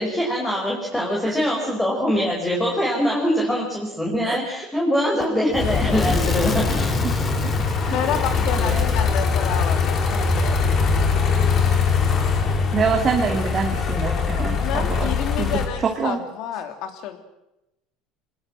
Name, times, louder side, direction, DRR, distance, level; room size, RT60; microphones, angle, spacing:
voice 1, 0.0-7.3, equal, 10° left, -2 dB, 5.2 m, -23 dB
Fire / Explosion, 5.5-10.4, left 3 dB, 25° left, 2.9 m, -30 dB
sound 1, 5.6-15.7, left 5 dB, 45° left, 4.4 m, -22 dB
voice 2, 7.9-10.8 14.6-17.2, left 9 dB, 60° left, 8 dB, 3.2 m, -29 dB
voice 3, 12.7-15.6 16.0-16.2, right 5 dB, 30° right, 2 dB, 2.7 m, -25 dB
23.5 x 20.5 x 7.6 m, 0.92 s
supercardioid pair, 110°, 0 cm